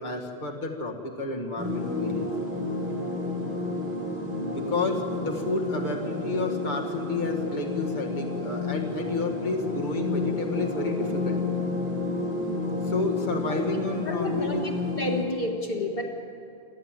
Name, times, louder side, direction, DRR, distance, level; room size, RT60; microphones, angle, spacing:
voice 1, 0.0-2.3 4.5-11.4 12.8-14.7, left 3 dB, 50° left, 1 dB, 1.9 m, -31 dB
sound 1, 1.6-15.2, left 2 dB, 15° right, 4.5 m, -30 dB
voice 2, 14.0-16.1, left 1 dB, 65° left, 2 dB, 1.9 m, -30 dB
28.5 x 12.5 x 9.0 m, 2.5 s
omnidirectional pair, 1.0 m